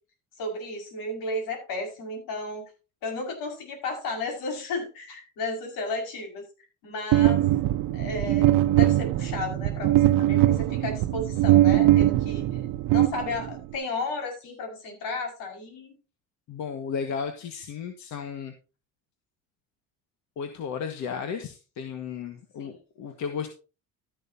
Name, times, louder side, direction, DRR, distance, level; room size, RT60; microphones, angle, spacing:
voice 1, 0.4-2.7 3.0-6.5 6.8-7.4 7.9-12.6 12.9-16.0 22.6-22.8, left 2 dB, 80° left, 3 dB, 5.7 m, -33 dB
sound 1, 7.1-13.7, right 14 dB, 75° right, 0.8 m, -21 dB
voice 2, 16.5-18.5 20.4-23.5, left 6 dB, 55° left, 6 dB, 1.7 m, -34 dB
13.0 x 11.0 x 2.8 m, 0.33 s
cardioid pair, 150°, 33 cm